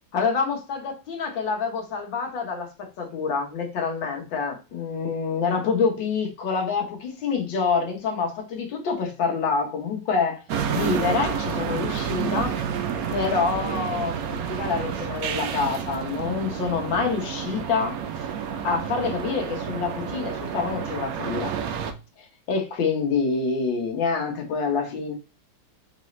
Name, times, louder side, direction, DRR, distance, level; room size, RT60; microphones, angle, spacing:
voice 1, 0.1-2.7 3.0-10.4 10.7-12.6 13.1-18.0 18.6-21.5 22.2-25.1, left 5 dB, 65° left, 1.8 m, -26 dB
sound 1, 10.5-21.9, right 7 dB, 80° right, 0.8 m, -29 dB
4.0 x 3.7 x 3.1 m
omnidirectional pair, 2.2 m